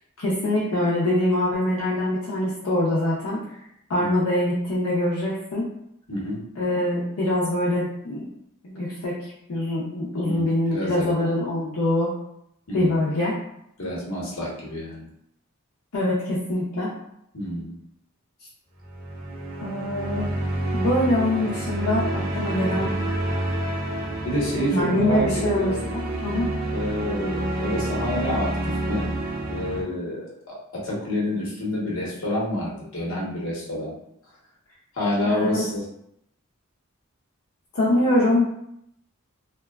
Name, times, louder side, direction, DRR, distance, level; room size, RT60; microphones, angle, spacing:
voice 1, 0.2-3.4 3.9-5.7 6.6-8.3 8.6-12.1 12.7-13.4 15.9-16.9 19.6-20.3 20.7-22.9 24.6-25.7 26.2-26.5 35.2-35.7 37.7-38.4, left 1 dB, 80° left, -7 dB, 0.6 m, -24 dB
voice 2, 6.1-6.4 10.2-11.2 12.7-13.0 13.8-15.0 17.3-17.8 21.2-21.5 22.5-22.9 24.2-25.9 26.6-29.1 29.5-34.0 34.9-35.8, left 1 dB, 65° left, -5 dB, 0.9 m, -28 dB
sound 1, 18.8-29.8, right 1 dB, 65° right, 1.0 m, -28 dB
2.9 x 2.2 x 2.3 m, 0.76 s
head